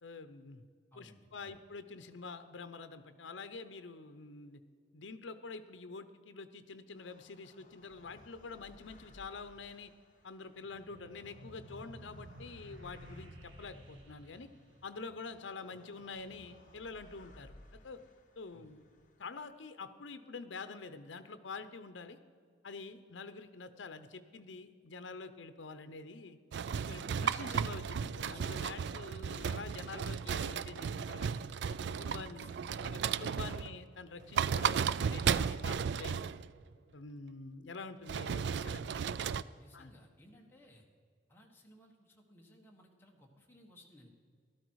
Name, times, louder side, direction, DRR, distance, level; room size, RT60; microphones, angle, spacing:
voice 1, 0.0-0.6 1.0-4.6 4.9-9.9 10.2-14.5 14.8-17.5 17.8-18.0 18.4-18.8 19.2-22.2 22.6-26.4 26.8-31.3 31.7-32.5 32.8-36.2 36.9-38.8 39.7-39.9, left 4 dB, 80° left, 11 dB, 0.7 m, -47 dB
voice 2, 0.9-1.6 15.7-15.8 18.5-18.8 32.1-33.0 33.4-33.7 38.9-40.8 41.3-44.1, equal, 10° left, 0 dB, 1.5 m, -59 dB
sound 1, 6.9-19.3, left 1 dB, 45° left, 1.2 m, -61 dB
sound 2, 10.6-15.5, right 1 dB, 80° right, 1.5 m, -54 dB
sound 3, 26.5-33.8 34.2-36.5 38.1-39.4, right 7 dB, 60° right, 0.3 m, -34 dB
13.5 x 12.5 x 4.7 m, 2.1 s
head